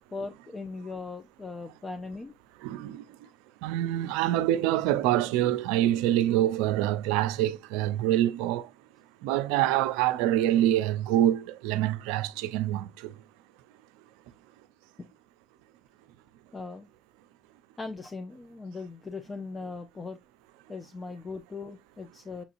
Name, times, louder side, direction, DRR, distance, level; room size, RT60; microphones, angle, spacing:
voice 1, 0.1-2.3 15.0-15.1 16.5-16.9 17.8-20.2 20.7-22.4, left 3 dB, 30° left, 0.7 m, -39 dB
voice 2, 2.6-3.1 3.6-8.7 9.2-13.1, right 13 dB, 85° right, 0.4 m, -26 dB
6.9 x 2.8 x 2.6 m
hypercardioid pair, 60°, 0 cm